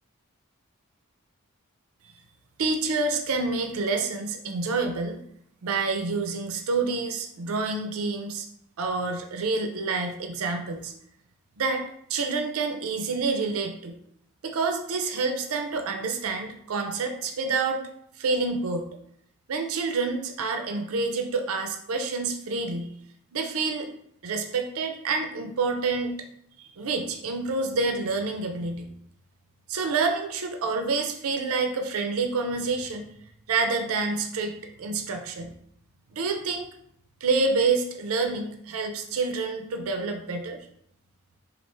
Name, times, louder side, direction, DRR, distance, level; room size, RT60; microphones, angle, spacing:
voice 1, 2.6-5.2 5.6-8.5 8.8-10.9 11.6-13.9 14.4-17.8 18.2-18.9 19.5-22.9 23.3-23.9 24.2-26.1 26.6-28.9 29.7-33.1 33.5-35.5 36.1-36.7 37.2-40.6, right 4 dB, 70° right, 5 dB, 0.5 m, -28 dB
4.3 x 2.5 x 3.2 m, 0.71 s
head